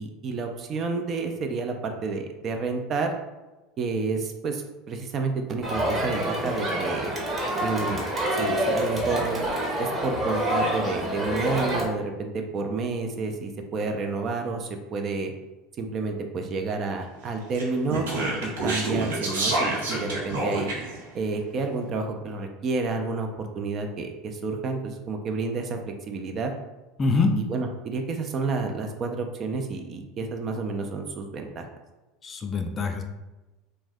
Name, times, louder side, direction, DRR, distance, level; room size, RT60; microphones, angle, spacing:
voice 1, 0.0-3.1 3.8-7.1 7.6-8.0 8.3-9.5 9.8-15.3 15.8-20.7 21.1-26.5 27.1-31.7, right 4 dB, 40° right, 4 dB, 0.4 m, -30 dB
Crowd, 5.6-11.9, right 1 dB, 25° right, 0.9 m, -27 dB
Speech, 17.5-21.0, right 2 dB, 75° right, 0.7 m, -28 dB
voice 2, 27.0-27.3 32.2-33.0, left 4 dB, 30° left, 5 dB, 0.4 m, -24 dB
2.5 x 2.2 x 3.4 m, 1.1 s
hypercardioid pair, 80°, 0 cm